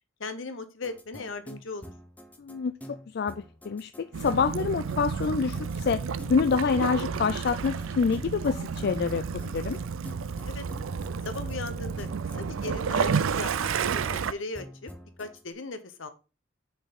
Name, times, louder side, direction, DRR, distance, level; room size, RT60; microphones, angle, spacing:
voice 1, 0.2-1.9 10.4-10.6 11.2-12.1 12.4-14.9 15.2-16.1, left 3 dB, 75° left, 1.0 m, -37 dB
sound 1, 0.8-15.4, equal, 10° left, 0.7 m, -47 dB
voice 2, 2.4-9.8, left 5 dB, 55° left, 0.4 m, -27 dB
Waves surf / Splash splatter / Trickle dribble, 4.1-14.3, right 6 dB, 80° right, 0.4 m, -31 dB
6.0 x 4.5 x 5.1 m
head